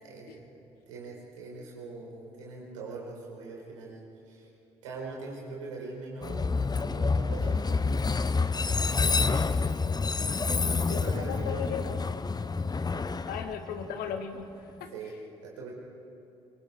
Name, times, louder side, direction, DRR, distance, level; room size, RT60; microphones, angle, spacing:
voice 1, 0.0-0.5 0.9-4.5 4.8-8.0 10.9-11.8 13.2-13.3 14.9-15.2 15.4-15.7, right 3 dB, 85° right, -2 dB, 4.5 m, -42 dB
Train, 6.2-14.2, left 4 dB, 25° left, 0.8 m, -28 dB
voice 2, 10.9-12.0 13.3-14.5 14.8-14.9, left 7 dB, 70° left, 7 dB, 1.8 m, -36 dB
25.0 x 23.5 x 4.8 m, 2.9 s
hypercardioid pair, 50°, 16 cm